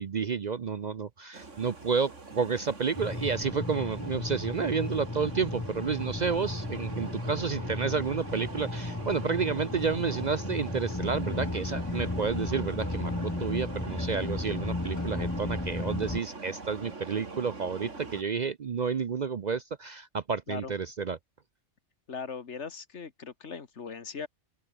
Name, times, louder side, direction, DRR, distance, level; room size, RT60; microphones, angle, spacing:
voice 1, 0.0-21.2, right 5 dB, 45° right, 0.6 m, -30 dB
sound 1, 1.3-18.2, right 3 dB, 85° right, 3.2 m, -43 dB
sound 2, 2.9-16.2, left 2 dB, 15° left, 1.1 m, -34 dB
voice 2, 22.1-24.3, left 5 dB, 70° left, 1.9 m, -39 dB
open air
omnidirectional pair, 1.2 m